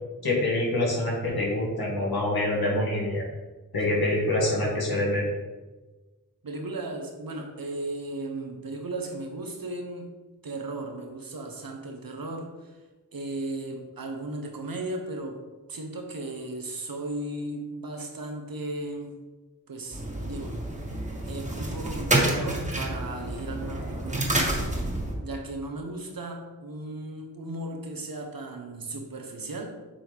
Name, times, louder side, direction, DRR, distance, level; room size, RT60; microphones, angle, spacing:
voice 1, 0.2-3.2 3.7-5.3, left 1 dB, 85° left, -4 dB, 2.1 m, -26 dB
voice 2, 6.4-10.1 10.4-12.8 13.1-19.1 19.7-20.6 21.2-24.8 25.2-29.7, right 2 dB, 70° right, 3 dB, 1.1 m, -36 dB
sound 1, 19.9-25.1, right 1 dB, 20° right, 1.6 m, -29 dB
7.6 x 4.2 x 3.5 m, 1.2 s
cardioid pair, 45°, 36 cm